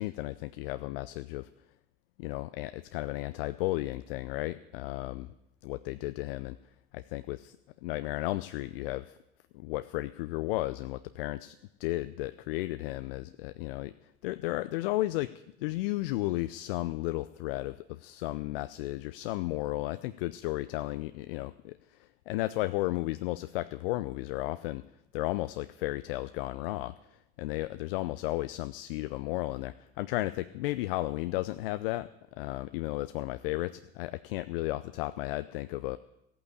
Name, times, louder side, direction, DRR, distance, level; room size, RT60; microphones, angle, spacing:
voice 1, 0.0-1.5 2.2-5.3 5.6-6.6 6.9-7.6 7.8-9.2 9.5-13.9 14.2-15.3 15.6-24.8 25.1-26.9 27.4-32.1 32.4-36.0, left 18 dB, 70° left, 13 dB, 0.5 m, -34 dB
15.0 x 8.6 x 8.4 m, 0.85 s
figure-of-eight pair, 60°, 29 cm